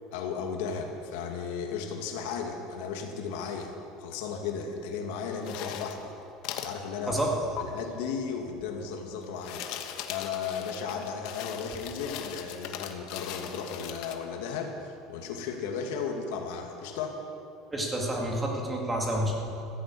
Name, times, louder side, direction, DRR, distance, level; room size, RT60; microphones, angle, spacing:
voice 1, 0.1-6.1 6.6-7.2 7.6-9.7 10.1-17.2, left 6 dB, 80° left, 3 dB, 2.2 m, -35 dB
sound 1, 5.4-6.1 6.4-6.8 7.6-7.7 9.2-14.2, left 10 dB, 55° left, 1.2 m, -39 dB
voice 2, 17.7-19.5, right 1 dB, 10° right, -1 dB, 2.3 m, -29 dB
15.0 x 10.5 x 8.6 m, 2.7 s
cardioid pair, 165°, 0 cm